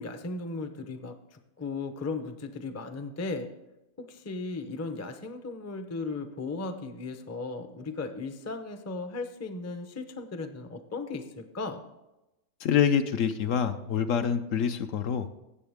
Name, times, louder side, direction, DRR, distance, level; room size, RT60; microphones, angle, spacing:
voice 1, 0.0-3.5 4.0-11.8, left 3 dB, 20° left, 7 dB, 0.4 m, -36 dB
voice 2, 12.6-15.3, left 8 dB, 65° left, 9 dB, 1.0 m, -26 dB
17.0 x 7.2 x 3.5 m, 0.95 s
omnidirectional pair, 1.5 m